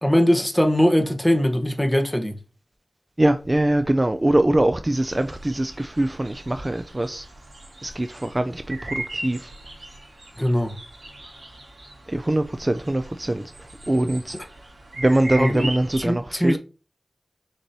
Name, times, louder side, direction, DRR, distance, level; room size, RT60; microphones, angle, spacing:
voice 1, 0.0-2.4 10.4-10.8 15.4-15.7 16.1-16.6, equal, 10° left, 0.9 m, -20 dB
voice 2, 3.2-7.3 7.8-9.5 12.1-13.5 13.9-14.4 15.0-16.6, right 1 dB, 30° right, 0.4 m, -22 dB
sound 1, 4.9-16.0, right 2 dB, 80° right, 2.3 m, -39 dB
6.7 x 3.0 x 2.7 m
wide cardioid pair, 65°, 0 cm